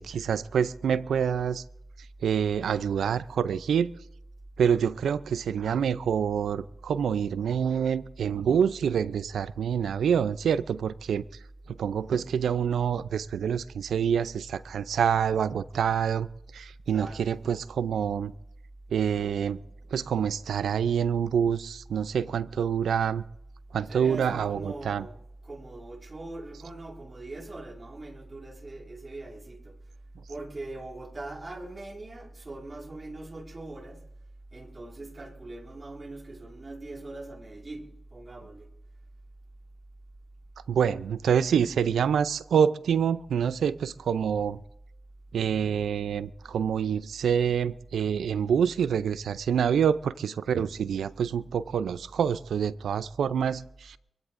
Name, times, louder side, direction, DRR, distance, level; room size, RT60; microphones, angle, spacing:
voice 1, 0.0-1.6 2.2-3.9 4.6-11.2 11.7-16.3 16.5-18.3 18.9-19.6 19.9-23.2 23.7-25.1 40.7-44.6 45.3-54.0, right 7 dB, 90° right, 0.4 m, -26 dB
voice 2, 16.9-17.3 23.9-29.8 30.3-34.1 34.5-38.7, right 2 dB, 45° right, 2.0 m, -41 dB
26.5 x 16.0 x 2.6 m
cardioid pair, 45°, 0 cm